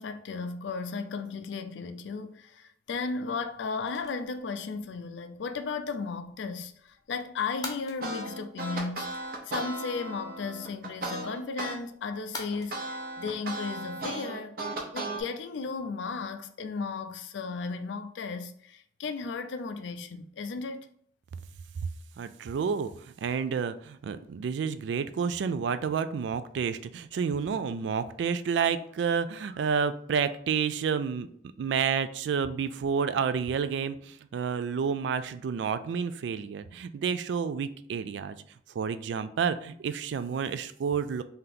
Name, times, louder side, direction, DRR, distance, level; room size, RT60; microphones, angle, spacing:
voice 1, 0.0-14.6 14.9-20.9, left 4 dB, 75° left, 0.4 m, -35 dB
sound 1, 2.8-13.3, left 3 dB, 20° left, 0.6 m, -49 dB
sound 2, 8.0-11.8 12.1-15.2, right 2 dB, 50° right, 0.8 m, -36 dB
voice 2, 22.2-31.3 31.6-38.4 38.8-41.2, right 6 dB, 70° right, 0.3 m, -30 dB
3.4 x 2.8 x 3.8 m
head